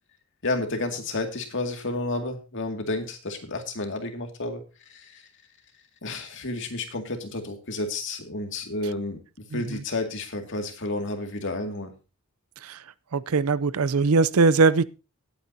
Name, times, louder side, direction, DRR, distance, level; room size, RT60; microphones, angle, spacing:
voice 1, 0.4-4.6 4.9-5.3 6.0-11.9, left 2 dB, 60° left, 4 dB, 2.2 m, -31 dB
voice 2, 13.1-14.8, right 4 dB, 80° right, 18 dB, 0.6 m, -20 dB
19.0 x 9.1 x 2.8 m, 0.30 s
head